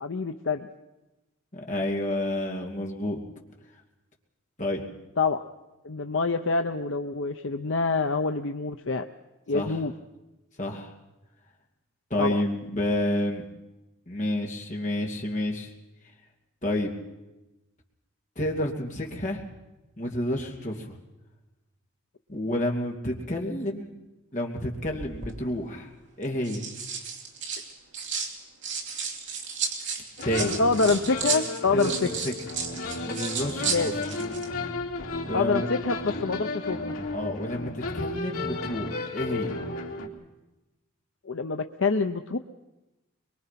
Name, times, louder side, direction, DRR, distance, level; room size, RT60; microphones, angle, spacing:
voice 1, 0.0-0.7 5.2-5.4 5.8-9.1 9.5-9.9 12.2-12.4 30.4-32.1 33.7-34.1 35.3-37.0 41.3-42.4, left 4 dB, 60° left, 7 dB, 0.7 m, -26 dB
voice 2, 1.5-3.2 4.6-4.8 9.5-9.8 10.6-10.9 12.1-13.4 14.1-15.7 16.6-16.9 18.4-19.4 20.0-21.0 22.3-24.0 24.3-25.9 26.2-26.6 30.2-30.5 31.7-32.3 33.0-33.9 35.3-35.7 37.1-39.5, left 1 dB, 35° left, 0 dB, 2.6 m, -29 dB
sound 1, 24.8-25.3 26.2-28.3 28.6-34.5 34.8-35.0, right 6 dB, 55° right, 2.7 m, -33 dB
sound 2, 30.2-40.1, left 2 dB, 75° left, 3.7 m, -33 dB
23.0 x 23.0 x 5.9 m, 1.0 s
head